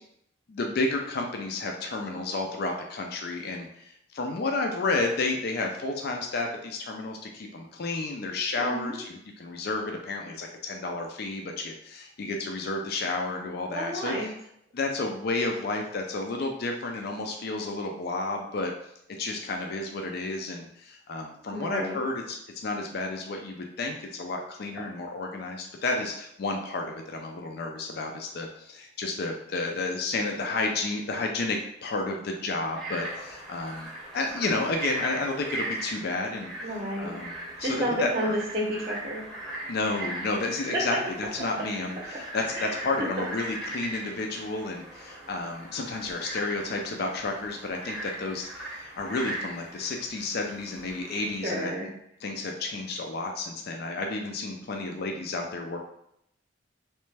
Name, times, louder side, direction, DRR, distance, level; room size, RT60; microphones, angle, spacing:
voice 1, 0.5-14.3 14.7-18.7 19.2-22.4 22.6-33.9 34.1-36.5 37.0-37.3 37.6-38.4 39.7-51.9 52.2-55.8, left 3 dB, 55° left, 2 dB, 0.4 m, -31 dB
voice 2, 8.6-9.0 13.7-14.3 21.5-22.0 36.6-37.2 37.6-39.2 42.5-42.8 51.4-51.9, right 1 dB, 35° right, -3 dB, 0.7 m, -31 dB
Frog, 32.6-51.4, right 1 dB, ahead, 0.7 m, -39 dB
3.2 x 3.2 x 3.3 m, 0.76 s
head